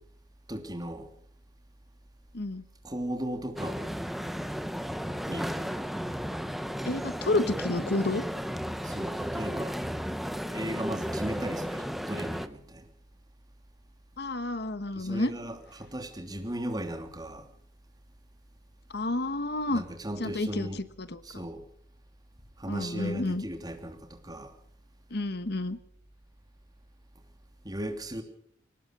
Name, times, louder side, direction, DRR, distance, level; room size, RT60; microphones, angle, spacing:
voice 1, 0.5-1.1 2.8-3.9 5.3-5.5 8.8-9.8 10.5-12.9 14.9-17.5 19.7-20.8 21.2-21.6 22.6-24.5 27.6-28.2, right 1 dB, 20° right, 3.0 m, -36 dB
sound 1, 3.6-12.5, equal, ahead, 0.9 m, -34 dB
voice 2, 6.8-8.2 14.2-15.3 18.9-19.8 20.2-21.4 22.7-23.4 25.1-25.8, left 2 dB, 55° left, 1.2 m, -30 dB
23.5 x 19.0 x 6.6 m
head